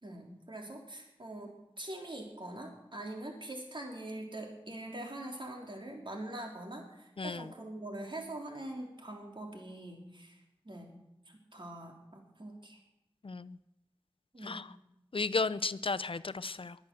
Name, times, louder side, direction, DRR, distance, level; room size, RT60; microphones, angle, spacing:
voice 1, 0.0-10.4 10.6-10.9 11.5-12.8 14.3-14.6, right 1 dB, 55° right, 1 dB, 3.4 m, -43 dB
voice 2, 7.2-7.5 13.2-13.6 14.4-14.7 15.1-16.8, left 4 dB, 65° left, 16 dB, 0.5 m, -34 dB
22.0 x 8.1 x 6.8 m, 0.87 s
wide cardioid pair, 55°, 10 cm